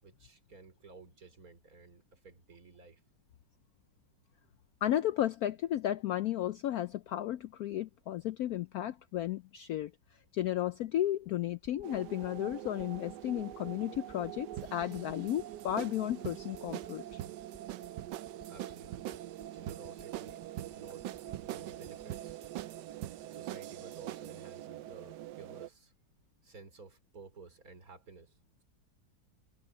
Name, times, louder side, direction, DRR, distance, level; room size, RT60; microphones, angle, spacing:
voice 1, 0.0-3.0 18.5-19.2 19.5-20.5 20.7-21.1 21.5-22.5 23.3-25.9 26.4-28.4, right 4 dB, 45° right, 3.9 m, -54 dB
voice 2, 4.8-9.9 10.3-17.2, left 12 dB, 75° left, 0.8 m, -34 dB
sound 1, 11.6-24.4 25.0-25.1, left 1 dB, 20° left, 6.4 m, -60 dB
sound 2, 11.8-25.7, right 13 dB, 70° right, 1.1 m, -46 dB
sound 3, 14.6-24.5, right 13 dB, 85° right, 1.5 m, -44 dB
omnidirectional pair, 2.1 m